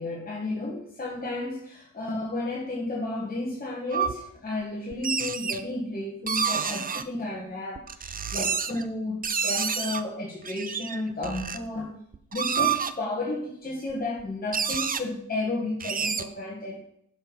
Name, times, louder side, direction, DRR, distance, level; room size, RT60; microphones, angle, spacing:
voice 1, 0.0-11.9 12.3-16.8, left 2 dB, 25° left, -4 dB, 1.6 m, -32 dB
sound 1, 3.9-4.1 4.9-5.6 6.3-7.0 7.8-8.8 9.2-10.0 10.4-11.6 12.1-12.9 13.9-14.0 14.2-14.3 14.5-15.0 15.8-16.2, right 6 dB, 25° right, 0.5 m, -28 dB
7.0 x 4.3 x 5.5 m, 0.70 s
cardioid pair, 90°, 36 cm